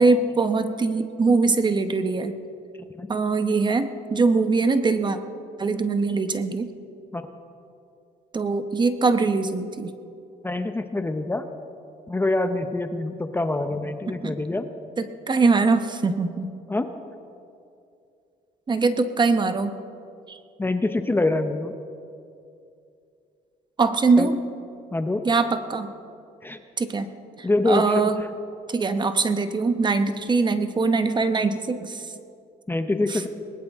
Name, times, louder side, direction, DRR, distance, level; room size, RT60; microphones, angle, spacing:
voice 1, 0.0-2.3 3.1-5.2 5.6-6.7 8.3-9.9 14.2-14.4 15.0-16.5 18.7-19.7 20.3-20.4 23.8-24.4 25.2-25.9 26.8-27.1 27.4-28.2 28.7-32.1 33.1-33.2, right 4 dB, 25° right, 9 dB, 1.0 m, -22 dB
voice 2, 10.4-11.4 12.1-14.7 16.7-16.9 20.6-21.7 24.2-24.3 24.9-25.2 26.4-26.6 27.4-27.8 32.7-33.3, left 2 dB, 15° left, 8 dB, 0.8 m, -25 dB
20.0 x 19.5 x 3.6 m, 2.5 s
cardioid pair, 110°, 17 cm